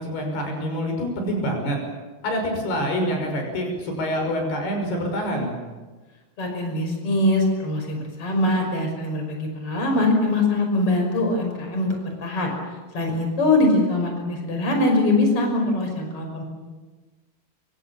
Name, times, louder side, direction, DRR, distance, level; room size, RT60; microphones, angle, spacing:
voice 1, 0.0-1.8 2.2-5.5, equal, 90° left, 3 dB, 8.0 m, -26 dB
voice 2, 6.4-12.5 12.9-16.4, left 2 dB, 35° left, 3 dB, 6.5 m, -22 dB
27.5 x 25.0 x 7.3 m, 1.3 s
omnidirectional pair, 4.5 m